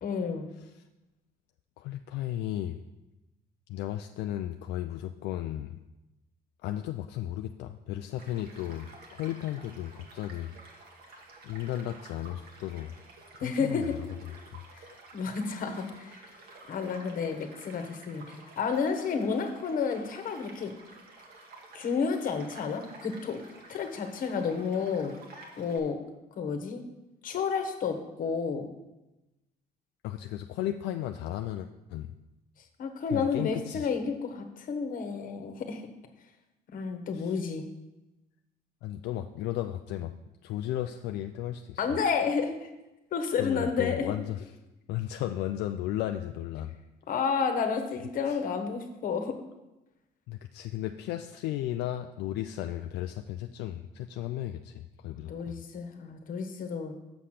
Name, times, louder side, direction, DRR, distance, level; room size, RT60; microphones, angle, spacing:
voice 1, 0.0-0.5 13.4-13.9 14.7-14.8 15.1-16.2 16.7-20.7 21.7-23.4 23.7-25.1 25.6-26.0 26.4-26.8 27.2-28.6 32.8-35.9 36.7-37.6 41.8-42.7 43.1-44.1 47.1-49.3 55.2-56.9, left 5 dB, 55° left, 6 dB, 1.3 m, -31 dB
voice 2, 1.8-2.8 3.7-5.7 6.6-10.5 11.4-12.9 13.4-14.0 14.3-14.4 30.0-32.1 33.1-33.9 37.1-37.4 38.8-40.1 40.4-41.9 43.4-44.4 44.9-46.8 48.3-48.4 50.3-55.6, left 13 dB, 80° left, 6 dB, 0.4 m, -35 dB
Child speech kid speaking / Stream / Car passing by, 8.2-25.8, right 2 dB, 65° right, 1.7 m, -51 dB
7.0 x 5.8 x 6.4 m, 0.99 s
cardioid pair, 110°, 17 cm